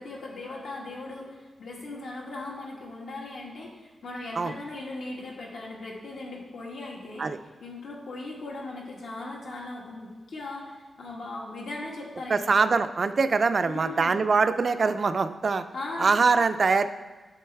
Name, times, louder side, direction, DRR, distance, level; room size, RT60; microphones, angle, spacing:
voice 1, 0.0-7.3 7.6-12.5 13.6-14.2 15.7-16.1, left 2 dB, 80° left, -3 dB, 1.8 m, -38 dB
voice 2, 12.3-15.6 16.0-16.9, right 4 dB, 45° right, 10 dB, 0.3 m, -23 dB
7.7 x 6.9 x 3.4 m, 1.3 s
wide cardioid pair, 155°, 0 cm